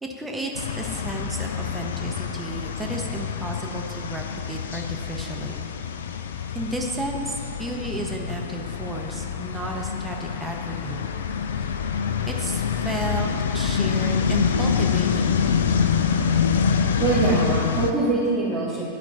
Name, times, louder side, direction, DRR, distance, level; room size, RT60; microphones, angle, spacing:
voice 1, 0.0-5.7 6.5-11.0 12.3-15.3, right 2 dB, 10° right, 0 dB, 0.9 m, -33 dB
sound 1, 0.5-17.9, left 7 dB, 65° left, 0.4 m, -26 dB
voice 2, 17.0-18.8, right 3 dB, 25° right, -10 dB, 1.9 m, -23 dB
11.5 x 4.4 x 4.1 m, 2.4 s
figure-of-eight pair, 90°, 0 cm